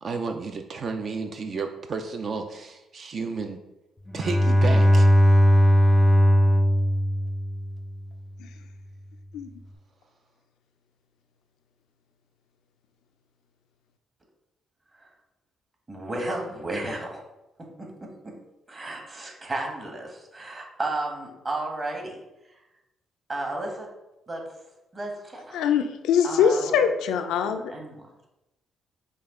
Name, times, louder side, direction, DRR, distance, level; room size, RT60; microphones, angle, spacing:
voice 1, 0.0-3.6 4.1-5.1, right 4 dB, 50° right, 5 dB, 0.4 m, -32 dB
Bowed string instrument, 4.1-7.9, equal, 15° left, 0.5 m, -18 dB
voice 2, 15.9-17.3 17.8-17.9 18.2-18.3 18.7-22.2 22.5-22.6 23.3-23.9 24.3-24.4 24.9-25.6 26.2-28.0, right 2 dB, 30° right, 1 dB, 1.2 m, -33 dB
voice 3, 25.5-27.6, left 7 dB, 90° left, 7 dB, 0.3 m, -22 dB
5.1 x 2.3 x 3.7 m, 0.93 s
cardioid pair, 90°, 0 cm